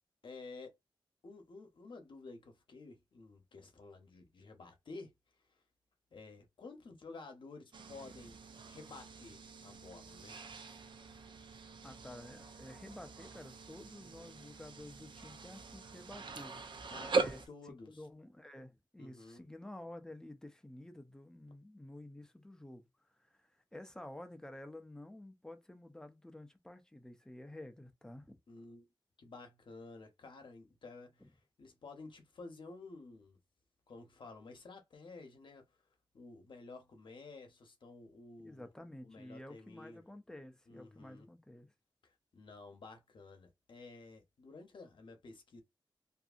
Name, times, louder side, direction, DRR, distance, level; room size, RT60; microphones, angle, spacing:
voice 1, 0.2-0.8 1.2-5.6 6.1-8.4 8.6-10.4 16.9-18.1 19.0-19.5 28.5-28.9 29.2-33.4 33.9-35.8 36.1-38.7 39.0-40.0 40.7-41.3 42.0-45.6, left 3 dB, 70° left, 0.8 m, -52 dB
sound 1, 7.7-17.5, right 4 dB, 65° right, 0.5 m, -42 dB
voice 2, 11.8-16.9 17.2-28.4 31.2-31.3 38.4-41.7, left 1 dB, 5° left, 0.5 m, -51 dB
2.6 x 2.6 x 2.4 m
wide cardioid pair, 115°, 9 cm